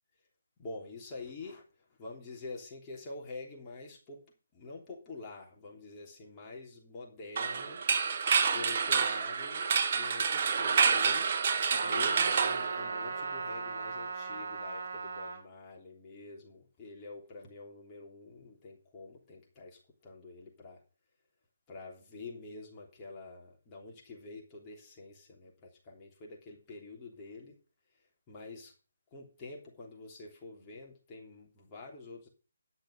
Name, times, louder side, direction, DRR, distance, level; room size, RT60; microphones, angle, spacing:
voice 1, 0.6-1.6 2.0-4.2 4.5-7.8 8.5-11.3 11.8-20.8 21.7-27.6 28.3-28.7 29.1-32.3, left 3 dB, 20° left, -2 dB, 3.3 m, -47 dB
sound 1, 7.4-13.3, right 6 dB, 45° right, 1.3 m, -28 dB
Trumpet, 11.7-15.4, right 4 dB, 60° right, 3.4 m, -37 dB
11.0 x 6.5 x 6.7 m, 0.34 s
hypercardioid pair, 160°, 0 cm